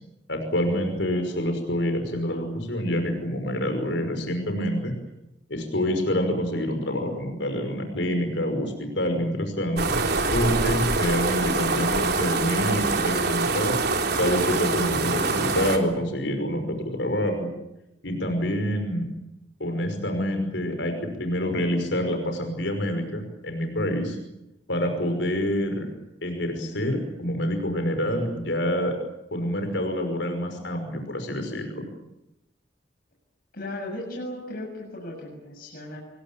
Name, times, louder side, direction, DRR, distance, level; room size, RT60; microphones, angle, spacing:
voice 1, 0.3-4.9 5.5-10.0 10.3-13.8 14.1-17.5 18.0-19.0 19.6-24.2 24.7-25.9 26.2-29.0 29.3-31.8, equal, 75° left, 6 dB, 5.7 m, -27 dB
sound 1, 9.8-15.8, right 3 dB, 60° right, 3.7 m, -25 dB
voice 2, 33.5-36.0, left 1 dB, 55° left, -1 dB, 7.2 m, -36 dB
26.5 x 22.5 x 8.8 m, 0.90 s
head